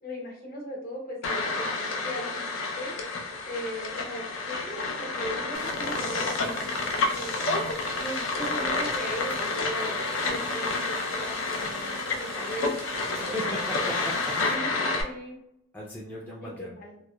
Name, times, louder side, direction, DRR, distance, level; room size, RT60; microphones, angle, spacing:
voice 1, 0.0-2.9 3.4-7.4 8.0-12.8 14.5-15.3 16.4-17.0, equal, 45° left, -1 dB, 0.8 m, -38 dB
sound 1, 1.2-15.0, left 3 dB, 75° left, 0.5 m, -30 dB
Mix spodni, 5.5-14.5, right 4 dB, 75° right, 0.5 m, -42 dB
voice 2, 13.1-14.7 15.7-16.7, left 1 dB, 10° left, -6 dB, 0.4 m, -38 dB
2.9 x 2.1 x 2.2 m, 0.80 s
head